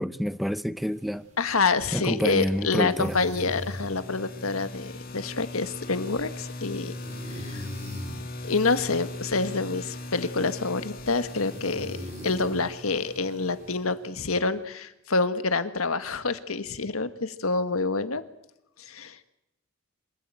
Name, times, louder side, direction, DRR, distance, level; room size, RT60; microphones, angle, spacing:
voice 1, 0.0-1.2 1.9-3.2, equal, ahead, 0.7 m, -28 dB
sound 1, 0.8-13.8, left 1 dB, 35° right, 6.4 m, -44 dB
voice 2, 1.4-6.9 7.3-7.7 8.4-18.2 18.8-19.2, left 4 dB, 90° left, 1.6 m, -27 dB
sound 2, 2.4-14.2, left 1 dB, 45° left, 2.2 m, -40 dB
26.5 x 13.5 x 9.0 m
head